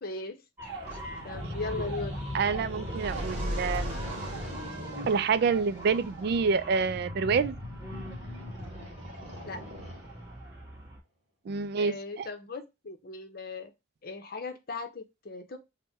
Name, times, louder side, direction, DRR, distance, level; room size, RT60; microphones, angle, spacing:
voice 1, 0.0-0.4 1.2-2.1 9.5-9.6 11.8-13.7 14.0-15.6, left 3 dB, 50° left, 0.7 m, -38 dB
sound 1, 0.6-11.0, right 2 dB, 15° right, 1.1 m, -43 dB
sound 2, 0.8-10.4, left 1 dB, 40° right, 1.3 m, -38 dB
voice 2, 2.3-4.0 5.1-7.6 11.5-12.3, right 5 dB, 55° right, 0.3 m, -27 dB
3.5 x 2.1 x 3.9 m
head